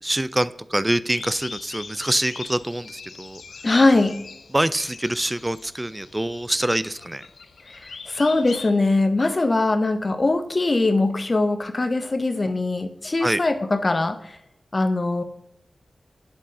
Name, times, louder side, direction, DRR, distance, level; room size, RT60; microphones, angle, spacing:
voice 1, 0.0-3.4 4.5-7.3 13.2-13.4, right 1 dB, 20° right, 16 dB, 0.4 m, -25 dB
sound 1, 1.1-8.7, left 5 dB, 85° left, 0.5 m, -41 dB
voice 2, 3.6-4.2 7.7-14.4 14.7-15.2, left 2 dB, 45° left, 9 dB, 0.8 m, -21 dB
8.6 x 3.8 x 5.4 m, 0.79 s
cardioid pair, 40°, 0 cm